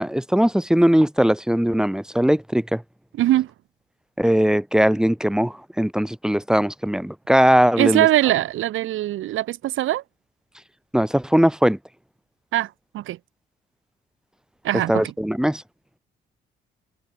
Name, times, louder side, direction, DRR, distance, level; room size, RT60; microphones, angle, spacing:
voice 1, 0.0-2.8 4.2-8.1 10.9-11.8 14.9-15.6, equal, 5° right, 3.3 m, -19 dB
voice 2, 3.1-3.5 7.8-10.0 12.5-13.2 14.6-15.1, right 14 dB, 85° right, 3.4 m, -22 dB
cardioid pair, 90°, 20 cm